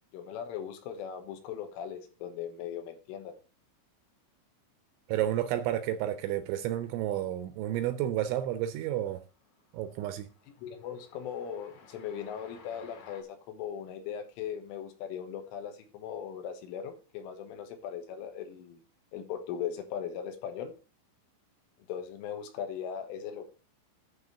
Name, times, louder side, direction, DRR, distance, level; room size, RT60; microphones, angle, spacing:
voice 1, 0.1-3.3 10.6-18.8 19.1-20.7 21.9-23.5, left 8 dB, 80° left, 3.8 m, -39 dB
voice 2, 5.1-9.2 9.7-10.3, right 12 dB, 80° right, 2.8 m, -31 dB
Train, 7.5-8.0 8.3-13.2, left 5 dB, 50° left, 2.6 m, -57 dB
11.5 x 4.3 x 6.9 m
omnidirectional pair, 5.9 m